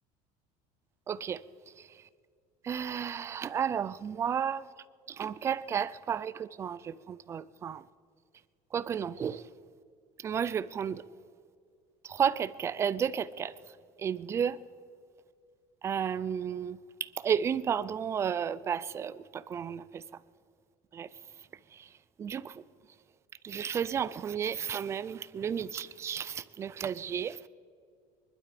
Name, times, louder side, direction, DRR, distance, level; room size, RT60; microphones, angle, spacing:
voice 1, 1.1-1.4 1.8-1.9 2.6-4.6 5.1-7.8 8.7-9.4 10.2-11.0 12.0-13.5 14.0-14.6 15.8-20.0 20.9-21.1 21.7-21.9 22.2-22.6 23.4-27.5, right 8 dB, 20° right, 0.3 m, -32 dB
23.5 x 12.0 x 5.1 m
cardioid pair, 180°, 15 cm